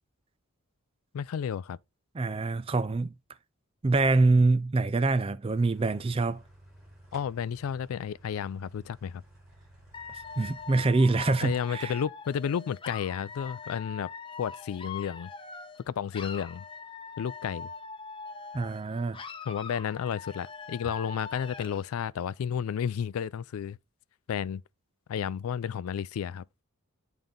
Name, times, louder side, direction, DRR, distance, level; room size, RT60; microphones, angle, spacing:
voice 1, 1.1-1.8 7.1-9.2 11.4-14.1 14.4-15.3 15.8-16.6 17.2-17.7 19.5-23.8 24.3-24.6 25.1-26.5, left 8 dB, 75° left, 0.3 m, -32 dB
voice 2, 2.1-3.1 3.8-6.4 10.4-11.9 18.5-19.2, right 3 dB, 25° right, 0.4 m, -25 dB
sound 1, 5.5-10.7, right 1 dB, ahead, 4.1 m, -55 dB
Dog / Alarm, 9.9-15.8 16.1-18.8 19.1-21.9, left 5 dB, 25° left, 0.6 m, -43 dB
8.8 x 3.9 x 3.7 m
head